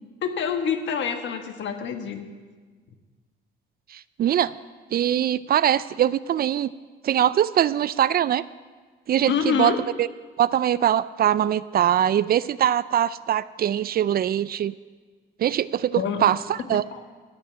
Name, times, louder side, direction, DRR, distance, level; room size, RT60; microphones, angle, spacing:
voice 1, 0.2-2.2 9.2-9.8 15.9-16.2 16.7-17.0, left 7 dB, 70° left, 7 dB, 1.4 m, -26 dB
voice 2, 3.9-4.5 4.9-6.7 7.0-8.4 9.1-9.7 10.0-10.1 10.4-14.7 15.4-16.8, right 10 dB, 50° right, 18 dB, 0.4 m, -22 dB
14.5 x 5.8 x 8.6 m, 1.5 s
cardioid pair, 90°, 20 cm